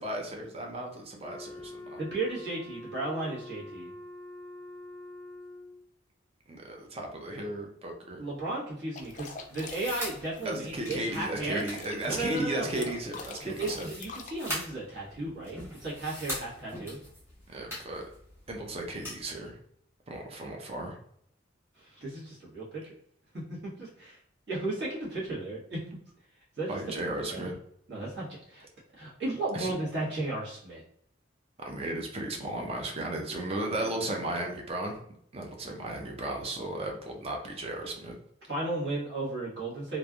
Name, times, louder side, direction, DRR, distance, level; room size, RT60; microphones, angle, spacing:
voice 1, 0.0-2.0 6.5-8.2 10.4-13.9 17.5-18.0 18.5-19.6 20.1-21.0 26.7-27.5 29.5-29.7 31.6-35.0 35.3-38.2, right 1 dB, 35° right, 2 dB, 0.6 m, -35 dB
Wind instrument woodwind instrument, 1.2-5.9, left 1 dB, 5° left, 0.8 m, -45 dB
voice 2, 2.0-3.9 8.2-11.6 12.0-12.9 13.4-17.0 21.8-22.9 23.5-24.2 24.5-25.8 26.6-26.7 27.3-27.5 27.9-28.6 29.0-30.8 33.6-34.1 38.5-40.0, right 2 dB, 60° right, -6 dB, 1.4 m, -35 dB
sound 1, 8.9-14.6, left 4 dB, 40° left, 0.4 m, -45 dB
sound 2, 9.0-19.2, equal, 15° right, 1.2 m, -43 dB
3.2 x 2.5 x 2.3 m, 0.69 s
head